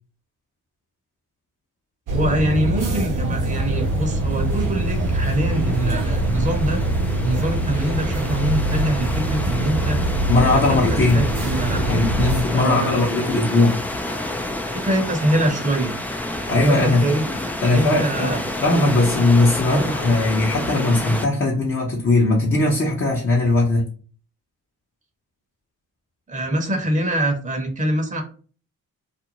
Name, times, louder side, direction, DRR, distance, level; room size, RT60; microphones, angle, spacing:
voice 1, 2.1-6.8 7.2-10.1 10.5-12.0 12.5-13.2 14.7-16.0 16.6-17.2 17.7-18.5 19.6-19.8 26.3-28.2, right 1 dB, 20° right, 3 dB, 0.8 m, -24 dB
sound 1, 2.1-12.4, right 1 dB, 50° right, 0.9 m, -23 dB
sound 2, 3.3-21.3, left 1 dB, 5° left, 0.4 m, -30 dB
voice 2, 10.3-11.2 11.9-13.8 16.5-17.1 17.6-23.9, left 2 dB, 35° left, -3 dB, 0.8 m, -19 dB
2.6 x 2.1 x 2.9 m, 0.40 s
hypercardioid pair, 45°, 39 cm